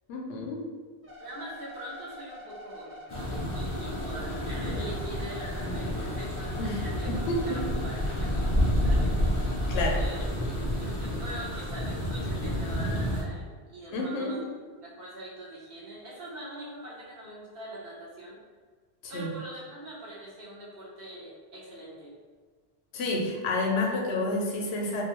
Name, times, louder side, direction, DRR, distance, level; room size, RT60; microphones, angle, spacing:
voice 1, 0.1-0.6 6.6-7.6 9.7-10.0 13.9-14.4 19.0-19.3 22.9-25.0, left 2 dB, 80° left, -1 dB, 0.8 m, -30 dB
sound 1, 1.0-10.1, equal, 15° right, 0.6 m, -46 dB
voice 2, 1.2-3.0 3.5-9.4 9.7-10.3 10.8-18.4 19.1-22.2, right 1 dB, 60° right, -6 dB, 1.0 m, -43 dB
sound 2, 3.1-13.2, equal, 45° left, 0.4 m, -29 dB
2.5 x 2.3 x 2.9 m, 1.5 s
omnidirectional pair, 1.1 m